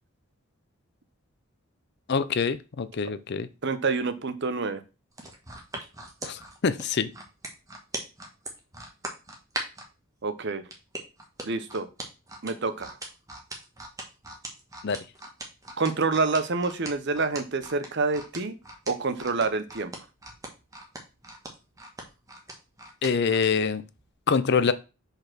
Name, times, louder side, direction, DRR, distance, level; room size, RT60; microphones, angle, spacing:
voice 1, 2.1-3.5 6.2-7.1 14.8-15.0 23.0-23.8 24.3-24.7, left 5 dB, 50° left, 14 dB, 0.5 m, -25 dB
voice 2, 3.6-4.8 10.2-10.6 11.4-11.9 12.4-13.0 15.8-18.5 18.9-19.9, right 4 dB, 55° right, 11 dB, 0.8 m, -27 dB
sound 1, 5.1-9.9 10.7-23.5 23.9-24.1, right 1 dB, 15° right, 1.3 m, -39 dB
5.3 x 4.3 x 6.0 m, 0.30 s
head